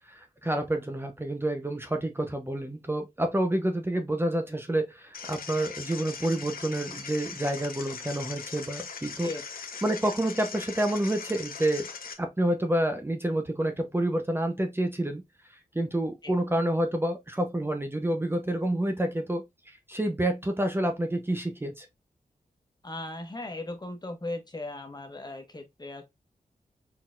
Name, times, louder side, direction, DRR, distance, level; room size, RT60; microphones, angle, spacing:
voice 1, 0.1-9.3 9.8-11.9 12.2-15.2 15.5-21.9, right 1 dB, 15° right, 0.8 m, -28 dB
sound 1, 5.1-12.1, left 5 dB, 85° left, 1.0 m, -40 dB
voice 2, 22.8-26.0, left 2 dB, 30° left, 1.3 m, -37 dB
4.3 x 4.1 x 2.5 m
wide cardioid pair, 85°, 15 cm